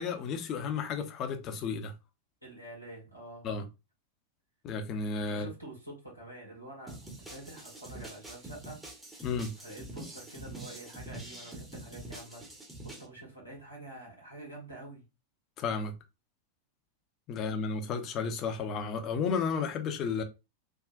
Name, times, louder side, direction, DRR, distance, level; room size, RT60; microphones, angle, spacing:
voice 1, 0.0-1.9 3.4-3.6 4.6-5.5 9.2-9.5 15.6-15.9 17.3-20.2, left 5 dB, 35° left, 0.6 m, -32 dB
voice 2, 2.4-3.5 5.3-8.8 9.1-9.3 9.6-12.5 12.8-15.0 17.3-17.7, right 1 dB, 90° right, 1.6 m, -47 dB
sound 1, 6.9-13.1, right 1 dB, 10° right, 0.9 m, -45 dB
3.6 x 2.5 x 2.3 m
figure-of-eight pair, 90°, 0 cm